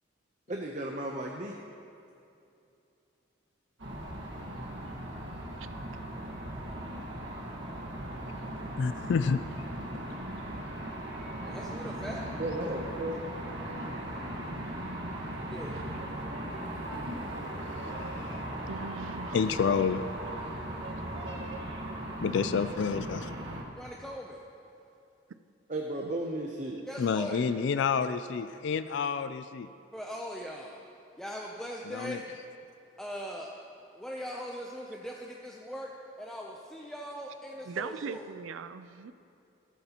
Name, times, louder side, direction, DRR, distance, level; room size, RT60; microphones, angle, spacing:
voice 1, 0.5-1.5 12.4-13.2 25.7-26.8, right 1 dB, 40° right, 0 dB, 0.7 m, -34 dB
sound 1, 3.8-23.6, right 1 dB, 65° right, 1.6 m, -38 dB
voice 2, 8.8-9.4 18.2-18.4 19.3-20.0 22.2-23.3 27.0-29.7 31.9-32.2, left 6 dB, 65° left, 12 dB, 0.3 m, -29 dB
voice 3, 11.5-12.2 15.5-15.8 23.8-24.4 26.9-27.5 29.9-30.8 31.2-32.3 33.0-33.5 33.9-35.9 36.2-38.3, equal, 5° left, -2 dB, 0.5 m, -40 dB
voice 4, 18.7-19.5 26.0-26.1 37.7-39.1, right 5 dB, 80° right, 12 dB, 0.4 m, -40 dB
14.5 x 13.5 x 2.9 m, 2.7 s
head